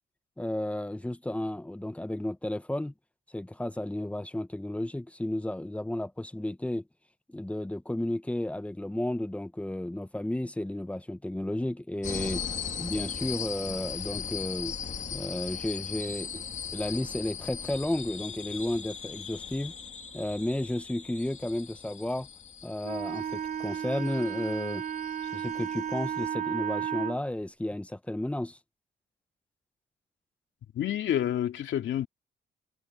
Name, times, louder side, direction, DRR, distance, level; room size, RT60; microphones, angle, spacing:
voice 1, 0.4-2.9 3.3-6.8 7.3-12.4 12.8-14.7 15.1-16.4 16.7-19.7 20.1-22.3 22.6-24.8 25.3-28.6, left 1 dB, 5° left, 1.0 m, -33 dB
sound 1, 12.0-26.3, left 7 dB, 35° left, 2.2 m, -39 dB
Wind instrument woodwind instrument, 22.8-27.2, right 9 dB, 40° right, 0.6 m, -33 dB
voice 2, 30.7-32.1, left 11 dB, 70° left, 2.5 m, -28 dB
cardioid pair, 90°, 20 cm